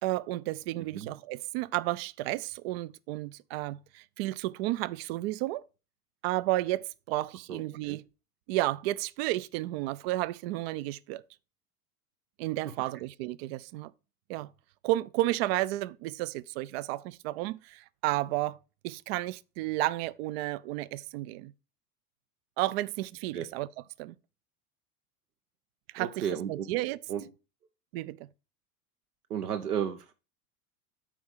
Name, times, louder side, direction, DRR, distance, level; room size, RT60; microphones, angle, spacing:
voice 1, 0.0-5.6 6.2-8.0 8.5-11.2 12.4-13.9 14.3-14.5 14.8-18.6 18.8-21.5 22.6-24.1 25.9-27.0 27.9-28.3, right 17 dB, 45° right, 0.5 m, -32 dB
voice 2, 26.0-26.7 27.1-27.2 29.3-30.1, right 9 dB, 75° right, 0.8 m, -33 dB
8.8 x 4.3 x 4.9 m
figure-of-eight pair, 85°, 46 cm